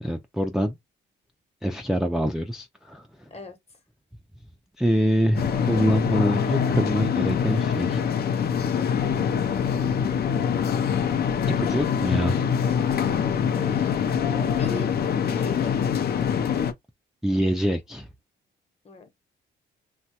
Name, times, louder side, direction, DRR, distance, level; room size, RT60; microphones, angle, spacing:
voice 1, 0.0-0.8 1.6-3.1 4.8-8.0 11.5-12.4 17.2-18.1, equal, ahead, 0.4 m, -25 dB
sound 1, 5.3-16.7, left 7 dB, 50° left, 0.5 m, -24 dB
voice 2, 13.5-14.1 14.3-14.9 15.2-15.7 18.8-19.2, left 5 dB, 30° left, 1.0 m, -37 dB
3.0 x 2.2 x 2.8 m
cardioid pair, 90°, 20 cm